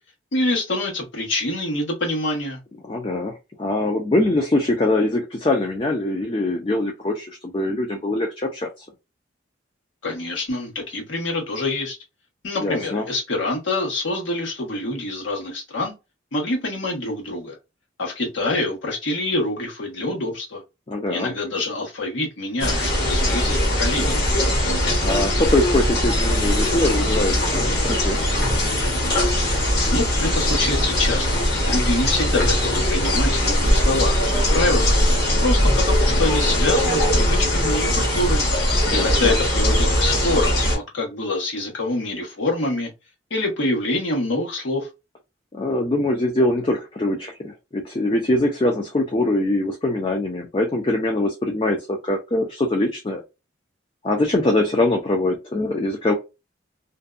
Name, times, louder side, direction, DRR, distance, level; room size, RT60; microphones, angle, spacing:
voice 1, 0.3-2.6 10.0-12.0 12.4-15.9 16.3-17.6 18.0-20.6 21.1-24.2 29.9-31.3 31.6-35.0 35.4-38.4 38.9-42.9 43.3-44.9, left 2 dB, 85° left, 1.1 m, -25 dB
voice 2, 2.8-8.8 12.6-13.0 20.9-21.3 25.0-28.2 38.9-39.3 45.5-53.2 54.0-56.1, left 2 dB, 30° left, 0.4 m, -23 dB
sound 1, 22.6-40.8, equal, 55° left, 1.0 m, -20 dB
2.6 x 2.2 x 2.3 m
head